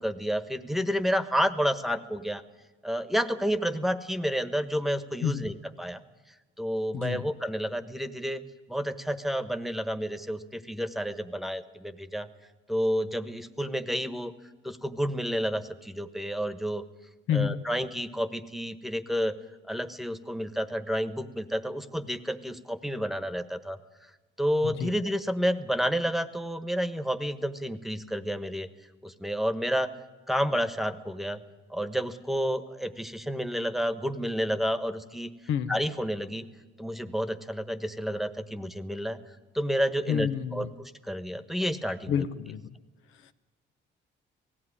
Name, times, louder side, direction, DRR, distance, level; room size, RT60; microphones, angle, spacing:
voice 1, 0.0-2.4 2.8-6.0 6.6-8.4 8.7-12.3 12.7-14.3 14.6-16.8 17.3-19.3 19.7-23.8 24.4-28.7 29.0-29.9 30.3-31.4 31.7-35.3 35.7-36.5 36.8-39.2 39.5-42.3, equal, ahead, 12 dB, 1.3 m, -30 dB
voice 2, 5.2-5.5 6.9-7.2 17.3-17.6 24.6-24.9 35.5-35.7 40.1-40.7 42.1-42.6, left 8 dB, 90° left, 10 dB, 1.0 m, -29 dB
18.0 x 15.5 x 9.9 m, 1.2 s
cardioid pair, 90°, 20 cm